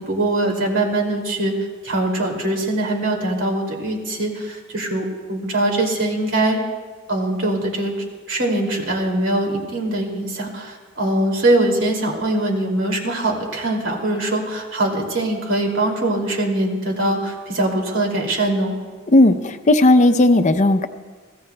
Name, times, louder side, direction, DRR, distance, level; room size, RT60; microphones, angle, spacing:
voice 1, 0.0-1.5 1.8-6.6 7.1-7.9 8.3-18.7, right 1 dB, 85° right, 1 dB, 2.6 m, -22 dB
voice 2, 19.1-20.9, left 1 dB, 40° left, 9 dB, 0.6 m, -14 dB
23.0 x 15.5 x 2.3 m, 1.5 s
head